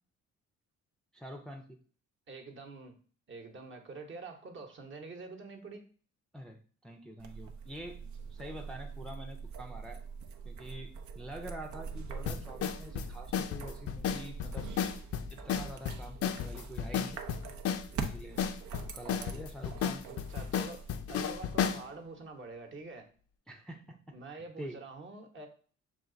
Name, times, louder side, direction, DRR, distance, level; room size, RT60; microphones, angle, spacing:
voice 1, 1.1-1.8 6.3-8.0 8.3-10.0 10.4-14.7 15.3-17.2 17.9-18.4 18.9-20.0 23.5-24.8, equal, ahead, 1 dB, 0.5 m, -46 dB
voice 2, 2.3-3.0 3.3-5.9 20.0-20.8 21.1-23.1 24.1-25.5, right 3 dB, 40° right, 4 dB, 1.0 m, -46 dB
sound 1, 7.2-21.7, right 6 dB, 70° right, 0.7 m, -44 dB
sound 2, 12.3-21.9, left 8 dB, 50° left, 0.5 m, -34 dB
5.8 x 2.4 x 3.8 m, 0.42 s
cardioid pair, 90°, 30 cm